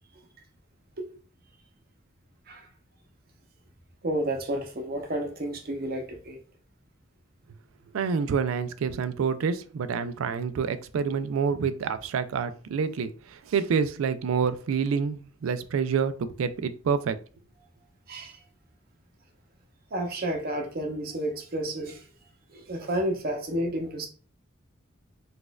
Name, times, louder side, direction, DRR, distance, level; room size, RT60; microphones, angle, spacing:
voice 1, 4.0-6.4 18.1-18.4 19.9-22.0 22.5-24.1, right 1 dB, 50° right, 0.7 m, -31 dB
voice 2, 7.9-17.2, right 6 dB, 85° right, 0.3 m, -27 dB
4.0 x 2.4 x 2.2 m
head